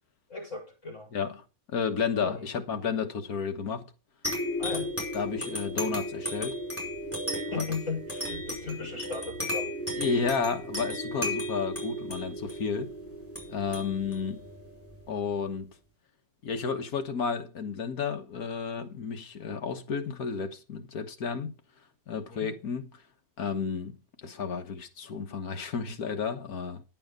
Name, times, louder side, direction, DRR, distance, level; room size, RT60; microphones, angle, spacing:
voice 1, 0.3-1.1 2.2-2.5 4.6-4.9 7.3-9.8 22.3-22.5, left 4 dB, 55° left, 6.3 m, -37 dB
voice 2, 1.7-3.9 5.1-6.6 7.6-7.7 10.0-12.9 13.5-14.5 15.1-15.7 16.4-21.5 22.1-22.9 23.4-26.8, left 5 dB, 80° left, 1.8 m, -32 dB
sound 1, 4.2-15.3, equal, 10° left, 4.9 m, -35 dB
10.5 x 8.8 x 5.2 m
omnidirectional pair, 1.5 m